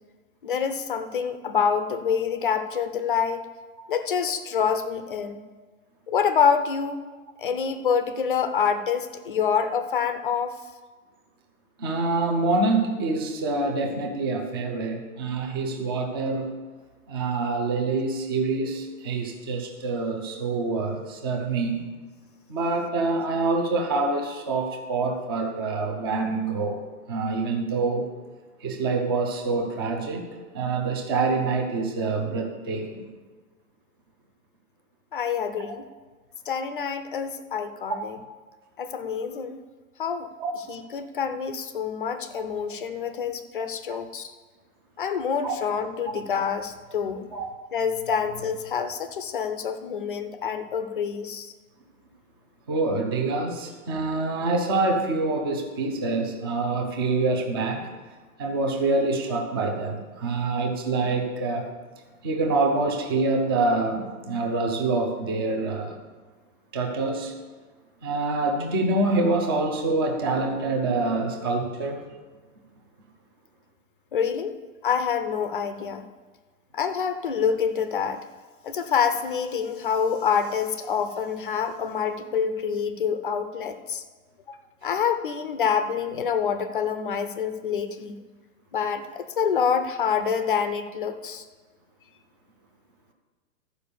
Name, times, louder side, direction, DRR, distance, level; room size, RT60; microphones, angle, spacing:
voice 1, 0.4-3.4 3.9-5.4 6.1-7.0 7.4-10.6 35.1-35.8 36.5-38.2 38.8-39.6 40.0-40.3 40.7-44.3 45.0-47.3 47.7-51.5 74.1-74.6 74.8-76.0 76.7-78.2 78.6-84.0 84.5-88.2 88.7-91.4, left 7 dB, 40° left, 10 dB, 0.6 m, -26 dB
voice 2, 11.8-16.5 17.1-21.9 22.5-26.8 27.1-28.1 28.6-33.0 40.4-40.5 43.9-44.0 45.4-45.5 47.3-47.5 52.7-57.8 58.4-61.7 62.2-66.0 66.7-67.3 68.0-72.0, right 3 dB, 15° right, 1 dB, 0.6 m, -26 dB
13.0 x 5.2 x 6.8 m, 1.4 s
hypercardioid pair, 175°, 42 cm